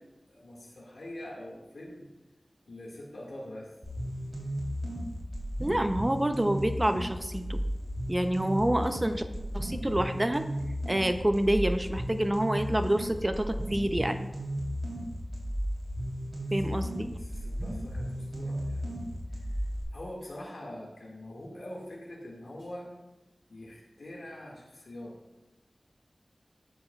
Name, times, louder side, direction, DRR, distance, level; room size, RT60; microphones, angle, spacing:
voice 1, 0.0-2.1 2.7-3.7 17.1-19.6 19.9-22.9 23.5-25.2, left 1 dB, 90° left, -3 dB, 1.8 m, -44 dB
sound 1, 3.8-19.8, equal, 40° right, 3.1 m, -34 dB
voice 2, 5.6-7.6 8.1-9.2 9.5-10.4 10.9-14.2 16.5-17.1, right 1 dB, 20° right, 8 dB, 0.5 m, -27 dB
11.0 x 7.8 x 2.3 m, 1.0 s
wide cardioid pair, 70°, 0 cm